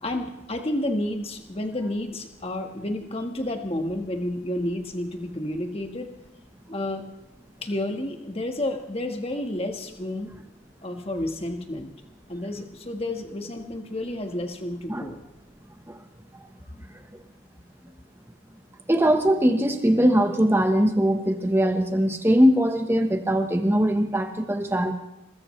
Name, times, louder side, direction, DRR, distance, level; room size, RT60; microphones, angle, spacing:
voice 1, 0.0-6.1 6.7-7.0 7.6-10.3 10.8-11.9 12.3-15.2, left 1 dB, 30° left, 4 dB, 1.6 m, -30 dB
voice 2, 18.9-24.9, equal, 10° right, 5 dB, 1.2 m, -21 dB
21.5 x 20.0 x 3.3 m, 0.93 s
head